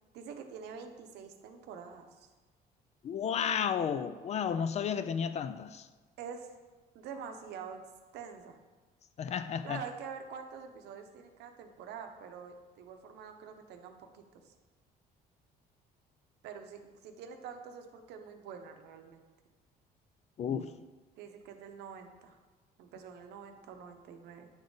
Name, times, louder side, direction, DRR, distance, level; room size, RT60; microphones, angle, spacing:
voice 1, 0.1-2.3 6.2-6.5 6.9-7.9 8.1-8.6 9.6-14.5 16.4-19.2 21.2-22.4 22.8-24.5, right 6 dB, 80° right, 6 dB, 0.8 m, -46 dB
voice 2, 3.0-5.9 9.2-9.8 20.4-20.7, left 7 dB, 40° left, 12 dB, 0.4 m, -32 dB
8.8 x 3.6 x 3.9 m, 1.3 s
cardioid pair, 110°, 17 cm